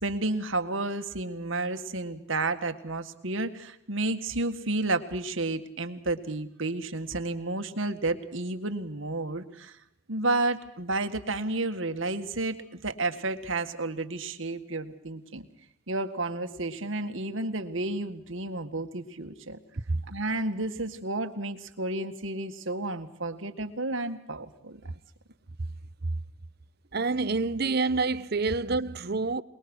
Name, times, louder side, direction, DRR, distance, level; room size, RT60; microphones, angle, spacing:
voice 1, 0.0-9.8 10.1-15.5 15.9-19.6 20.1-24.8, right 2 dB, 65° right, 1.8 m, -31 dB
voice 2, 26.9-29.4, right 3 dB, 45° right, 0.7 m, -27 dB
23.0 x 22.0 x 6.3 m
head